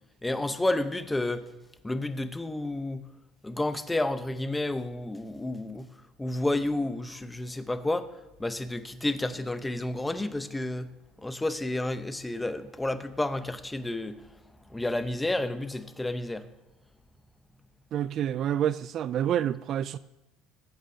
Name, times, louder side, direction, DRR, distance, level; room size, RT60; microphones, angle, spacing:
voice 1, 0.2-1.5 1.8-3.1 3.4-8.1 8.4-10.9 11.2-14.3 14.7-16.5, left 2 dB, 10° left, 0.8 m, -31 dB
voice 2, 17.9-20.0, right 10 dB, 50° right, 0.3 m, -28 dB
21.5 x 9.2 x 2.8 m
supercardioid pair, 110°, 0 cm